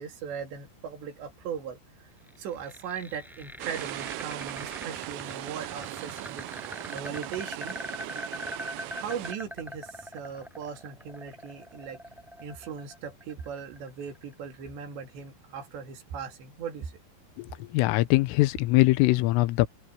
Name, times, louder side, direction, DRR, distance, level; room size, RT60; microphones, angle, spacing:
voice 1, 0.0-2.1 2.4-7.8 8.8-12.0 12.4-16.9, right 7 dB, 60° right, 4.8 m, -39 dB
sound 1, 2.3-14.3, equal, ahead, 7.1 m, -42 dB
sound 2, 3.6-9.3, right 16 dB, 80° right, 2.6 m, -39 dB
voice 2, 17.7-19.7, left 20 dB, 80° left, 3.4 m, -22 dB
open air
omnidirectional pair, 5.9 m